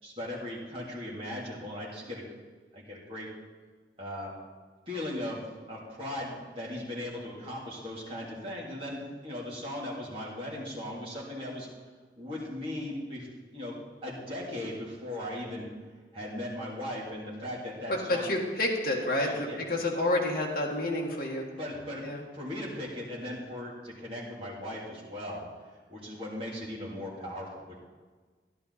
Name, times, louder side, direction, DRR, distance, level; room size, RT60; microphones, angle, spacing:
voice 1, 0.0-2.2 2.7-3.3 4.0-4.3 4.9-5.4 5.7-11.7 12.2-13.7 14.0-15.7 16.1-18.2 19.1-19.6 21.5-22.0 22.3-25.5 25.9-27.8, left 1 dB, 30° right, -6 dB, 3.1 m, -38 dB
voice 2, 17.9-21.4 22.0-22.2, left 1 dB, 55° left, -2 dB, 1.6 m, -29 dB
13.0 x 11.0 x 4.2 m, 1.4 s
head